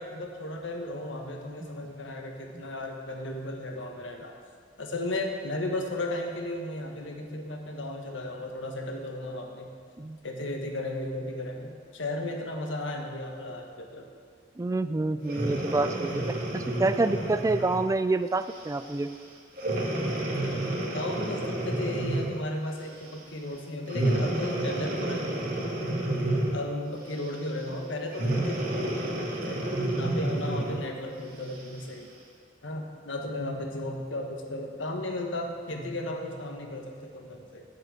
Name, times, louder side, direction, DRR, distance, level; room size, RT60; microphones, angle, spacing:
voice 1, 0.0-4.3 4.8-9.7 10.2-14.1 20.9-25.4 25.8-25.9 26.5-32.1 32.6-37.6, left 1 dB, 90° left, 2 dB, 1.3 m, -35 dB
voice 2, 14.6-16.3 16.5-19.1, right 2 dB, 20° right, 11 dB, 0.3 m, -27 dB
Breathing, 15.3-17.9 18.5-18.7 19.6-22.5 23.9-26.7 28.1-30.9 31.5-31.6, right 1 dB, 50° right, 1.9 m, -30 dB
7.6 x 7.4 x 8.0 m, 2.1 s
head